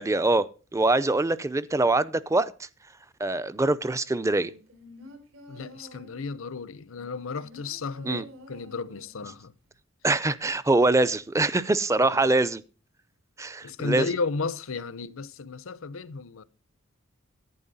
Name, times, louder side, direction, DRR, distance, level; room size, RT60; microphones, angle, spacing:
voice 1, 0.0-2.7 3.2-4.5 8.0-8.2 10.0-12.6 13.4-14.1, right 2 dB, 15° right, 0.5 m, -24 dB
sound 1, 4.4-6.3 6.9-9.3 9.7-9.8, left 1 dB, 75° right, 3.2 m, -49 dB
voice 2, 5.5-9.5 13.6-16.4, left 4 dB, 75° left, 0.7 m, -33 dB
11.0 x 9.3 x 4.1 m
head